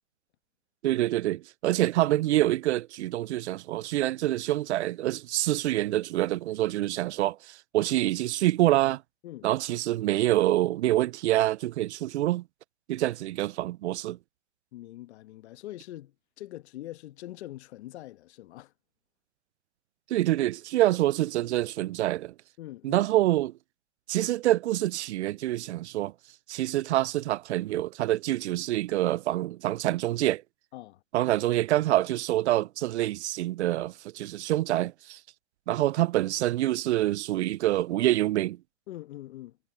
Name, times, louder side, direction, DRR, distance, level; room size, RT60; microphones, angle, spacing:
voice 1, 0.8-9.0 9.4-12.4 12.9-14.2 20.1-22.3 22.8-23.5 24.1-26.1 26.5-30.4 31.1-35.2 35.7-38.6, right 15 dB, 65° right, 0.6 m, -26 dB
voice 2, 14.7-18.7 22.6-23.1 30.7-31.0 38.9-39.6, left 15 dB, 60° left, 1.4 m, -43 dB
hypercardioid pair, 125°, 37 cm